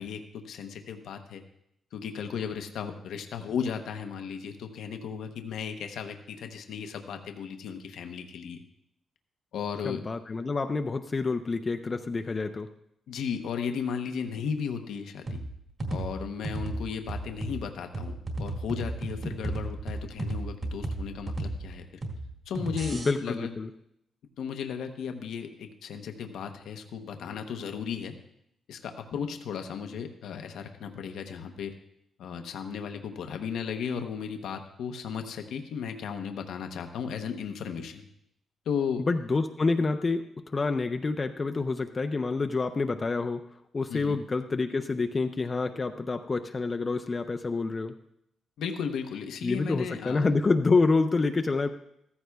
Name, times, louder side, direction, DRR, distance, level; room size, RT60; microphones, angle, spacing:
voice 1, 0.0-1.4 1.9-8.6 9.5-10.0 13.1-15.4 15.9-21.9 22.5-23.5 24.4-28.2 28.7-31.7 32.2-38.0 38.7-39.1 43.9-44.2 48.6-50.3, left 7 dB, 85° left, 6 dB, 0.8 m, -35 dB
voice 2, 9.8-12.7 22.9-23.7 39.0-40.3 40.5-43.4 43.7-47.9 49.4-51.7, left 3 dB, 25° left, 7 dB, 0.4 m, -27 dB
sound 1, 15.3-23.1, right 2 dB, 40° right, 1.8 m, -35 dB
14.5 x 14.0 x 2.3 m, 0.76 s
cardioid pair, 150°, 0 cm